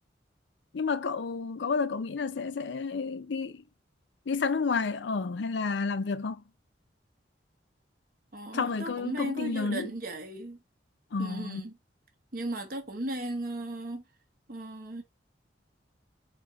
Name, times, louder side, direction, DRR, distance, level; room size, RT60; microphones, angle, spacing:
voice 1, 0.7-3.6 4.3-6.4 8.5-9.9 11.1-11.6, left 4 dB, 75° left, 0.5 m, -30 dB
voice 2, 8.3-10.6 11.2-11.7 12.3-14.0 14.5-15.0, right 1 dB, 50° right, 1.1 m, -36 dB
4.4 x 2.5 x 4.1 m
head